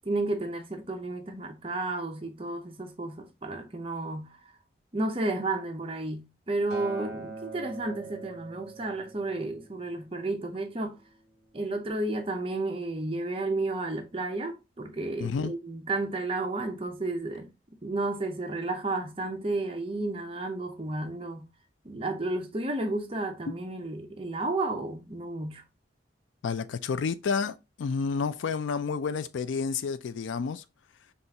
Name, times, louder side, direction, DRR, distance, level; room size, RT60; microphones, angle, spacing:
voice 1, 0.0-4.4 4.9-11.0 11.5-17.5 17.8-21.5 21.8-25.6, right 2 dB, 30° right, 0.6 m, -32 dB
Acoustic guitar, 6.7-11.0 11.8-11.9, right 3 dB, 55° right, 0.9 m, -43 dB
voice 2, 15.2-15.5 26.4-30.6, left 5 dB, 80° left, 0.4 m, -30 dB
5.3 x 2.4 x 2.8 m
head